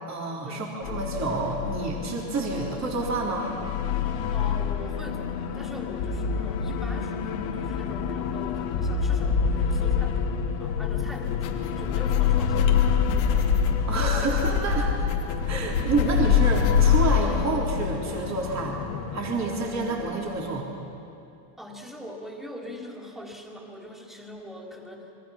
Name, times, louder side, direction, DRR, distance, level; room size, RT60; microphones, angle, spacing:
voice 1, 0.1-3.5 13.9-15.1 15.5-18.8 19.1-20.7, right 3 dB, 35° right, -2 dB, 3.9 m, -28 dB
sound 1, 0.8-20.6, left 7 dB, 60° left, 2.3 m, -27 dB
voice 2, 4.3-10.2 10.6-13.3 21.6-25.1, equal, ahead, 0 dB, 3.8 m, -42 dB
sound 2, 11.1-17.2, left 4 dB, 90° left, 2.7 m, -30 dB
27.5 x 22.5 x 5.9 m, 2.7 s
supercardioid pair, 100°, 49 cm